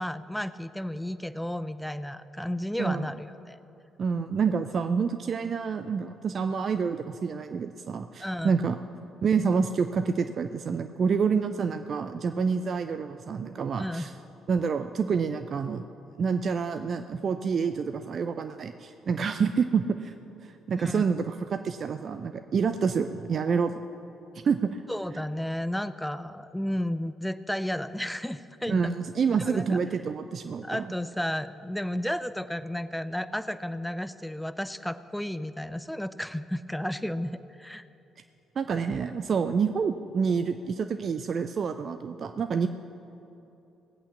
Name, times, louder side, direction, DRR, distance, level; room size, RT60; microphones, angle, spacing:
voice 1, 0.0-3.6 8.2-8.5 13.8-14.1 20.8-21.0 24.9-28.9 29.4-29.8 30.6-37.8, left 1 dB, 5° left, 13 dB, 0.6 m, -33 dB
voice 2, 4.0-8.8 9.2-14.1 14.5-15.8 16.2-20.1 20.4-23.8 24.3-24.8 28.7-30.9 38.6-42.7, right 5 dB, 50° right, 9 dB, 0.5 m, -28 dB
18.5 x 8.5 x 7.1 m, 3.0 s
hypercardioid pair, 45°, 0 cm